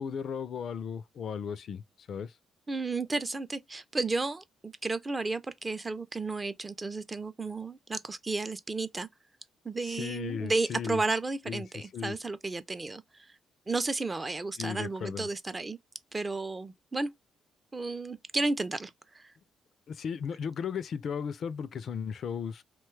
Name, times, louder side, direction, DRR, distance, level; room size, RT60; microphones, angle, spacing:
voice 1, 0.0-2.4 9.8-11.0 11.5-11.6 11.9-12.2 14.6-15.3 19.9-22.6, left 7 dB, 60° left, 0.3 m, -36 dB
voice 2, 2.7-9.1 9.6-13.0 13.7-15.8 16.1-17.1 17.7-19.3, right 3 dB, 25° right, 0.4 m, -33 dB
3.0 x 2.2 x 3.1 m
cardioid pair, 90°, 0 cm